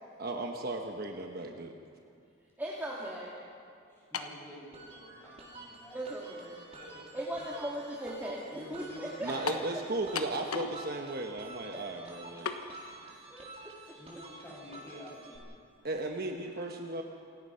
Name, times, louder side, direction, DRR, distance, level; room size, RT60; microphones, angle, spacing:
voice 1, 0.2-1.7 9.2-12.5 15.8-17.0, right 2 dB, 45° right, 2 dB, 1.2 m, -36 dB
voice 2, 2.6-3.3 5.9-6.6 7.1-8.4 8.7-9.3 9.7-9.8 13.3-14.0, right 1 dB, 10° right, -5 dB, 2.1 m, -38 dB
voice 3, 3.9-6.1 6.5-7.5 8.5-9.6 12.6-13.2 13.8-15.6, left 1 dB, 10° left, -4 dB, 6.5 m, -50 dB
sound 1, 4.1-4.4 5.3-5.4 9.5-9.7 10.2-10.8 11.1-11.2 12.5-12.6, left 5 dB, 90° left, 1.4 m, -35 dB
sound 2, 4.7-15.4, right 2 dB, 30° right, 3.9 m, -50 dB
28.0 x 17.5 x 5.7 m, 2.4 s
head